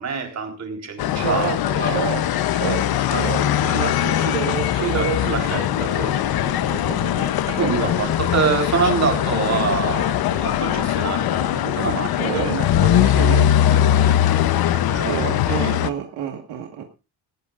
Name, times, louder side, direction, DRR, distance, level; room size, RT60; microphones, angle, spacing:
voice 1, 0.0-2.0 2.6-2.8 3.1-4.3 4.8-6.2 7.5-15.8, right 5 dB, 40° right, 3 dB, 3.9 m, -27 dB
sound 1, 1.0-15.9, left 11 dB, 60° left, 0.9 m, -21 dB
voice 2, 1.2-1.6 1.9-7.7 12.2-12.7 13.0-13.5 15.0-16.8, right 9 dB, 75° right, 3 dB, 1.8 m, -29 dB
18.0 x 14.5 x 2.5 m, 0.30 s
cardioid pair, 125°, 42 cm